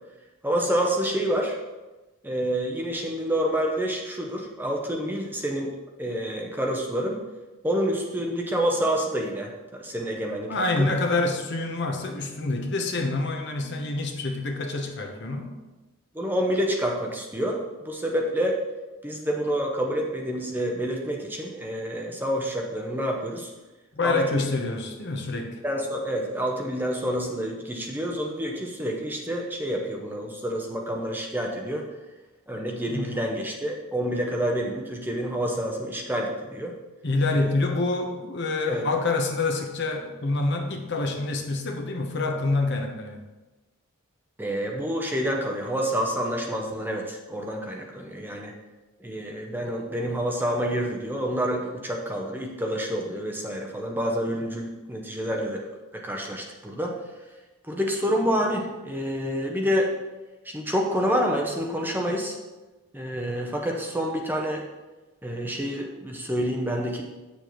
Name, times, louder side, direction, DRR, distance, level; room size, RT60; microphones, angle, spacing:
voice 1, 0.4-1.6 2.2-5.7 6.0-7.2 7.6-10.9 16.1-18.6 19.0-23.5 24.0-24.5 25.6-31.8 32.5-36.7 37.3-37.5 38.7-38.8 44.4-48.5 49.0-56.9 57.6-59.9 60.4-62.4 62.9-64.7 65.2-67.0, equal, 10° right, 1 dB, 0.6 m, -28 dB
voice 2, 10.5-15.5 23.9-25.6 32.9-33.2 37.0-43.2, left 3 dB, 55° left, 3 dB, 0.9 m, -27 dB
8.3 x 6.9 x 3.1 m, 1.2 s
head